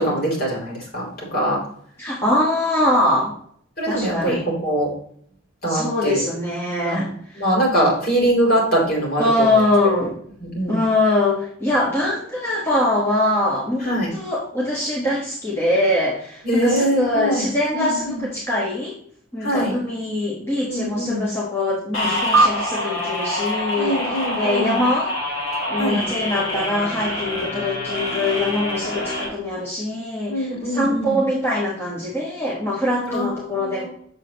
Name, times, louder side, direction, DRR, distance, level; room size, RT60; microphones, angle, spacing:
voice 1, 0.0-1.6 3.8-4.9 5.6-6.2 6.8-7.0 7.4-9.6 9.9-10.0 10.4-10.8 13.8-14.1 16.4-18.2 19.4-19.7 20.6-21.2 23.8-24.8 25.8-26.0 30.3-31.2 33.1-33.9, right 1 dB, 45° left, -3 dB, 3.1 m, -23 dB
voice 2, 2.0-3.3 3.8-4.4 5.7-7.4 9.2-10.1 10.7-18.9 19.3-25.1 25.7-33.8, left 1 dB, 10° left, -6 dB, 1.3 m, -23 dB
sound 1, 21.9-29.3, left 1 dB, 75° left, 2.6 m, -26 dB
sound 2, 22.3-25.1, right 3 dB, 80° right, 0.4 m, -24 dB
7.3 x 6.5 x 2.9 m, 0.62 s
head